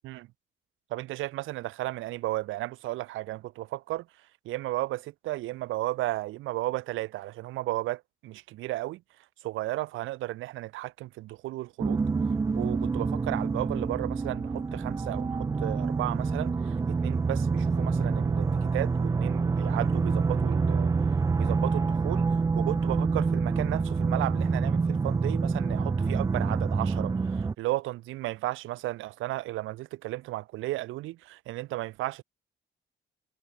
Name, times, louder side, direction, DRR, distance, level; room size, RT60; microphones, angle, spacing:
voice 1, 0.9-4.1 4.5-9.0 9.4-12.0 12.5-16.7 17.0-20.9 21.4-22.3 22.5-32.2, right 17 dB, 85° right, 0.6 m, -34 dB
sound 1, 11.8-27.5, right 4 dB, 15° right, 0.3 m, -27 dB
cardioid pair, 90°, 20 cm